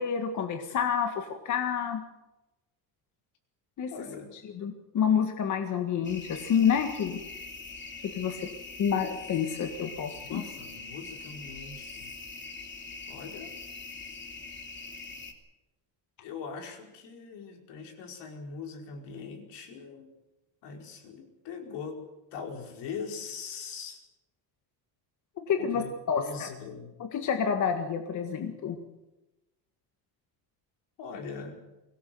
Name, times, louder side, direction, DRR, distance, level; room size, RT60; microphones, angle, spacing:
voice 1, 0.0-2.0 3.8-3.9 4.4-7.2 8.1-8.4 8.8-10.4 25.4-25.8 26.1-26.5 27.0-28.8, left 7 dB, 45° left, 5 dB, 1.8 m, -28 dB
voice 2, 3.9-4.3 10.2-12.1 13.1-13.5 16.2-20.1 20.6-22.0 22.3-24.0 25.6-25.9 26.2-26.9 31.0-31.6, left 5 dB, 75° left, 3 dB, 5.0 m, -41 dB
sound 1, 6.0-15.3, left 3 dB, 25° left, 2.9 m, -43 dB
23.5 x 17.5 x 7.8 m, 1.0 s
cardioid pair, 160°, 42 cm